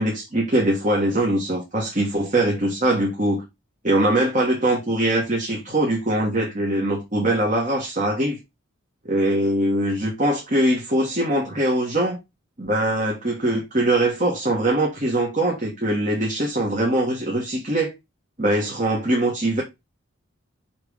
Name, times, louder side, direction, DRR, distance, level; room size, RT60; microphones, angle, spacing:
voice 1, 0.0-3.4 3.8-8.4 9.0-12.2 12.6-17.9 18.4-19.6, right 1 dB, 35° right, 1.6 m, -22 dB
6.2 x 3.7 x 6.2 m
head